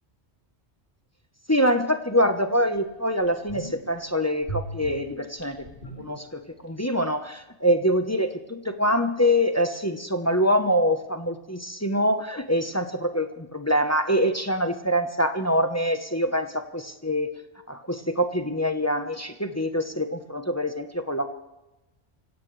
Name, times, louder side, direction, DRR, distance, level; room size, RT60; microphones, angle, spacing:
voice 1, 1.5-5.6 6.0-17.3 17.7-21.3, equal, 15° left, 6 dB, 0.9 m, -25 dB
sound 1, 2.2-2.3 2.7-2.8 3.2-4.0 4.4-6.7 6.9-7.0, right 3 dB, 50° left, 3.0 m, -38 dB
25.5 x 16.5 x 3.3 m, 0.98 s
omnidirectional pair, 1.2 m